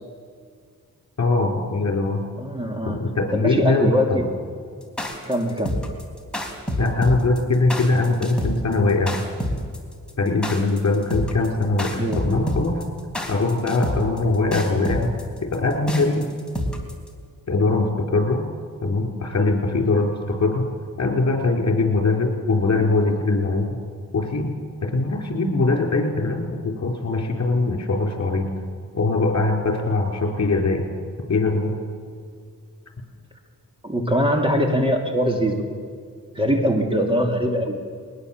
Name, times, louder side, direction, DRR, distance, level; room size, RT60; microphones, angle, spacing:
voice 1, 1.2-2.2 2.8-4.3 6.8-9.2 10.2-12.8 13.3-15.1 15.4-16.3 17.5-18.4 18.8-20.7 21.0-23.7 24.1-24.5 24.8-28.5 28.9-30.8 31.3-31.7, left 3 dB, 50° left, 3 dB, 4.1 m, -21 dB
voice 2, 2.4-3.0 3.3-4.2 5.2-5.8 12.0-12.2 33.8-35.6 36.3-37.8, equal, 15° right, 3 dB, 2.5 m, -22 dB
sound 1, 4.8-17.1, equal, 5° left, 3.3 m, -28 dB
21.0 x 19.5 x 7.3 m, 2.1 s
wide cardioid pair, 100°, 34 cm